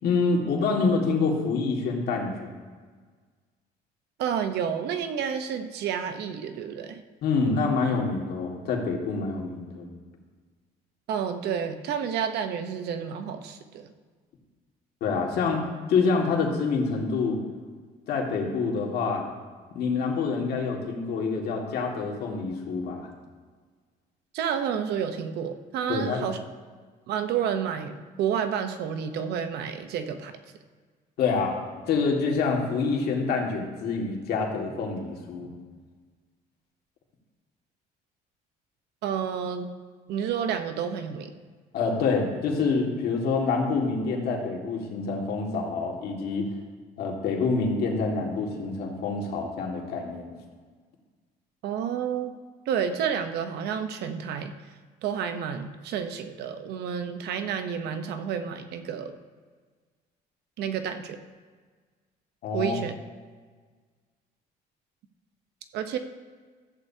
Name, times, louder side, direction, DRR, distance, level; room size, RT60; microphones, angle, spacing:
voice 1, 0.0-2.5 7.2-9.9 15.0-15.6 15.9-17.4 18.1-19.2 19.7-23.1 25.9-26.3 31.2-31.6 31.9-35.5 41.7-46.5 47.0-50.3 62.4-62.8, left 4 dB, 70° left, 0 dB, 2.0 m, -26 dB
voice 2, 4.2-7.0 11.1-13.9 24.3-26.4 27.1-30.4 39.0-39.7 40.1-41.3 51.6-52.3 52.7-54.5 55.0-59.2 60.6-61.2 62.5-62.9 65.7-66.0, right 8 dB, 75° right, 8 dB, 0.9 m, -30 dB
14.5 x 8.3 x 2.8 m, 1.5 s
cardioid pair, 110°, 17 cm